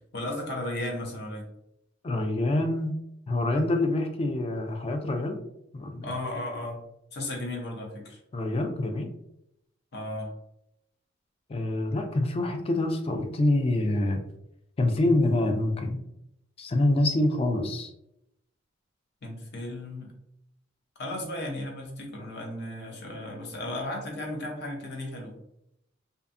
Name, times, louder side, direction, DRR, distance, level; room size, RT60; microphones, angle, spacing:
voice 1, 0.1-1.4 6.0-6.8 7.1-8.2 9.9-10.3 19.2-20.1 21.0-25.3, left 1 dB, 55° left, 0 dB, 0.7 m, -35 dB
voice 2, 2.0-3.0 3.3-5.4 5.7-6.1 8.3-9.1 11.5-14.2 14.8-16.0 16.6-17.9, left 1 dB, 30° left, 5 dB, 0.3 m, -26 dB
2.6 x 2.2 x 2.5 m, 0.79 s
head